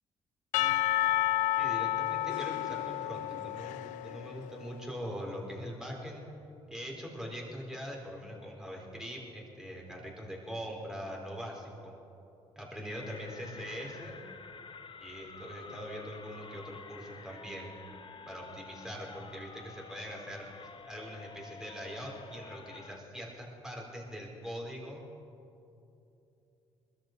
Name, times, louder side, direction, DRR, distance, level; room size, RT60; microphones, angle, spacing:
Percussion / Church bell, 0.5-4.7, left 13 dB, 80° left, 0.5 m, -31 dB
voice 1, 1.6-6.2 6.7-12.0 12.6-14.2 15.0-17.8 18.3-25.0, equal, 5° right, -2 dB, 4.3 m, -42 dB
sound 1, 12.9-23.0, left 5 dB, 40° left, 1.2 m, -50 dB
21.0 x 13.5 x 4.7 m, 2.9 s
supercardioid pair, 70°, 13 cm